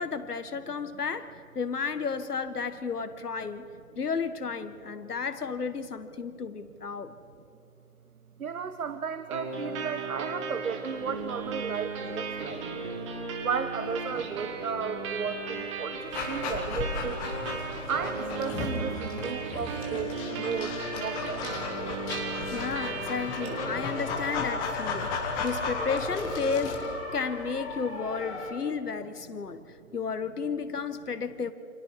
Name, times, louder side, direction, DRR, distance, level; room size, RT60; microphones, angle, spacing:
voice 1, 0.0-3.7 3.9-7.1 22.5-29.6 29.9-31.5, left 5 dB, 85° left, 11 dB, 1.7 m, -33 dB
voice 2, 8.4-12.6 13.4-17.3 17.9-21.5 29.8-29.9, right 6 dB, 70° right, 10 dB, 1.2 m, -34 dB
sound 1, 9.3-24.3, right 4 dB, 20° right, 1.7 m, -36 dB
sound 2, 10.9-28.5, left 3 dB, 45° left, 6.6 m, -41 dB
Dog, 16.1-26.9, left 4 dB, 10° left, 1.1 m, -35 dB
29.0 x 27.0 x 4.8 m, 2.8 s
hypercardioid pair, 160°, 45 cm